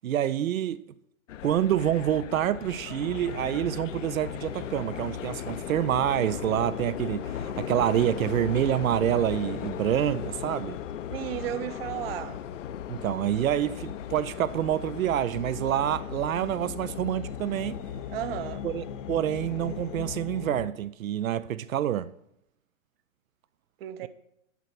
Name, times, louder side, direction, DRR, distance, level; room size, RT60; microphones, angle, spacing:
voice 1, 0.0-0.8 1.4-10.8 12.9-17.8 18.6-22.1 24.0-24.1, right 11 dB, 90° right, 0.5 m, -27 dB
sound 1, 1.3-20.2, left 10 dB, 65° left, 0.7 m, -38 dB
sound 2, 3.0-20.7, left 8 dB, 30° left, 0.5 m, -41 dB
voice 2, 11.1-12.4 18.1-18.6 23.8-24.1, right 12 dB, 45° right, 0.7 m, -34 dB
9.4 x 5.8 x 5.8 m
hypercardioid pair, 135°, 40 cm